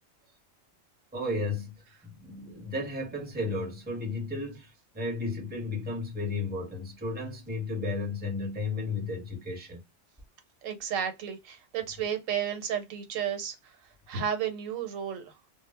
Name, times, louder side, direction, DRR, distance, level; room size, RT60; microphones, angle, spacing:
voice 1, 1.1-1.7 2.1-9.8, left 2 dB, 10° right, 0.7 m, -33 dB
voice 2, 10.6-13.8 14.1-15.3, right 8 dB, 90° right, 1.0 m, -32 dB
2.2 x 2.0 x 3.2 m
omnidirectional pair, 1.3 m